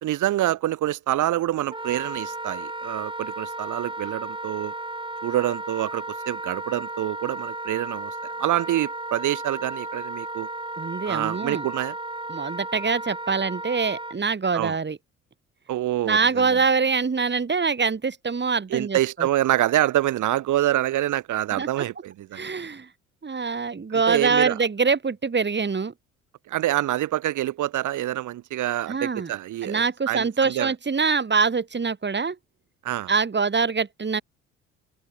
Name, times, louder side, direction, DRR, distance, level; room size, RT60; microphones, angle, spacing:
voice 1, 0.0-4.7 5.2-10.5 11.0-12.0 14.5-14.8 15.7-16.6 18.7-22.5 23.9-24.6 26.5-30.7 32.8-33.1, right 14 dB, 50° right, 1.3 m, -26 dB
Wind instrument woodwind instrument, 1.7-14.2, right 2 dB, 15° right, 5.8 m, -34 dB
voice 2, 10.8-11.7 12.3-15.0 16.0-19.3 21.6-21.7 22.3-22.9 23.2-25.9 28.9-29.3 29.6-32.4 33.1-34.2, right 5 dB, 30° right, 4.4 m, -24 dB
hypercardioid pair, 55°, 38 cm